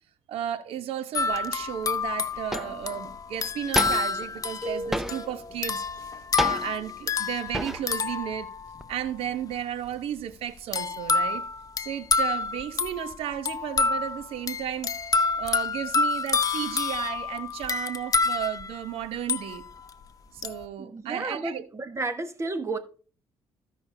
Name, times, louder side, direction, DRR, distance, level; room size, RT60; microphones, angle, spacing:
voice 1, 0.3-5.8 6.4-8.5 8.9-11.4 11.8-14.9 15.4-19.6 20.3-21.6, right 10 dB, 75° right, 0.9 m, -33 dB
sound 1, 1.1-9.0 10.7-19.9 20.4-20.6, left 4 dB, 35° left, 0.7 m, -28 dB
sound 2, 1.8-1.9 2.5-2.9 3.7-4.3 4.9-5.4 6.4-7.0 7.5-8.0 8.3-9.2, equal, 5° right, 0.6 m, -31 dB
sound 3, 4.6-5.7, equal, 45° right, 4.4 m, -37 dB
voice 2, 20.8-22.8, right 3 dB, 30° right, 1.4 m, -32 dB
15.5 x 5.5 x 2.7 m
supercardioid pair, 70°, 10 cm